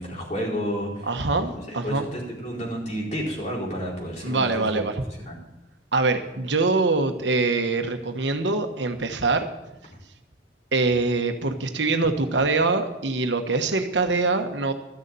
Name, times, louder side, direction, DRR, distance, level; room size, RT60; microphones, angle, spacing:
voice 1, 0.0-1.1 1.5-4.8 5.2-5.4, equal, 40° left, -3 dB, 4.3 m, -31 dB
voice 2, 1.1-2.1 4.2-4.9 5.9-9.4 10.7-14.7, right 3 dB, 85° right, 6 dB, 1.2 m, -24 dB
13.0 x 6.8 x 9.0 m, 0.97 s
head